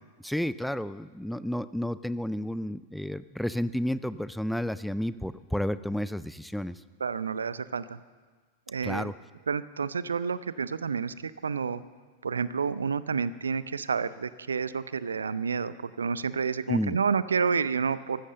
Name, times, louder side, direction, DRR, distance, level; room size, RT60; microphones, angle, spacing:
voice 1, 0.2-6.7 8.8-9.1 16.7-17.0, equal, ahead, 16 dB, 0.4 m, -31 dB
voice 2, 7.0-8.0 8.7-9.1 9.5-11.8 12.2-18.2, right 5 dB, 70° right, 17 dB, 0.5 m, -29 dB
14.5 x 12.5 x 6.6 m, 1.4 s
figure-of-eight pair, 90°, 0 cm